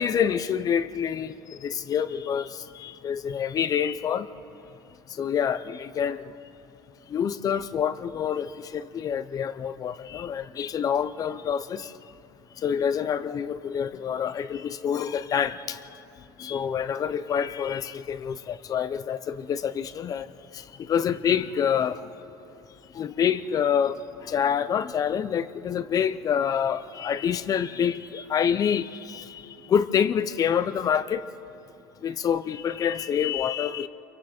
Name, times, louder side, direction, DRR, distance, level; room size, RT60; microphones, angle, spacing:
voice 1, 0.0-1.3 1.6-2.5 2.8-4.3 5.2-6.2 7.1-11.9 12.6-15.8 16.4-20.3 20.9-22.0 23.0-24.0 24.3-29.2 29.7-31.2 32.0-33.9, left 8 dB, 35° left, 0.7 m, -26 dB
28.0 x 23.5 x 4.4 m
supercardioid pair, 120°, 10 cm